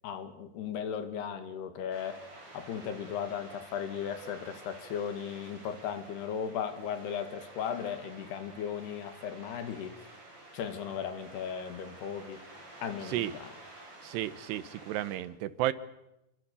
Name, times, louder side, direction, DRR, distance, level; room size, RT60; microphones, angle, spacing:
voice 1, 0.0-2.2 2.5-10.1 10.5-12.4 12.8-13.5, left 8 dB, 75° left, 9 dB, 3.9 m, -36 dB
sound 1, 1.9-15.2, right 2 dB, 25° right, 6.7 m, -51 dB
voice 2, 14.0-15.7, right 14 dB, 85° right, 15 dB, 3.1 m, -32 dB
26.5 x 24.0 x 7.0 m, 0.90 s
omnidirectional pair, 4.7 m